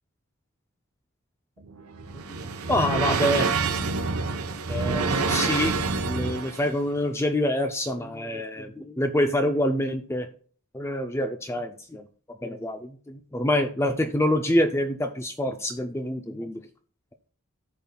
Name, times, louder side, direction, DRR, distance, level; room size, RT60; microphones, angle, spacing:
sound 1, 1.6-6.7, right 4 dB, 85° right, 0.8 m, -27 dB
voice 1, 2.7-3.5 4.7-5.8 6.1-10.3 10.7-12.0 12.4-16.6, left 1 dB, 10° left, 6 dB, 0.4 m, -26 dB
14.5 x 5.4 x 2.2 m, 0.44 s
head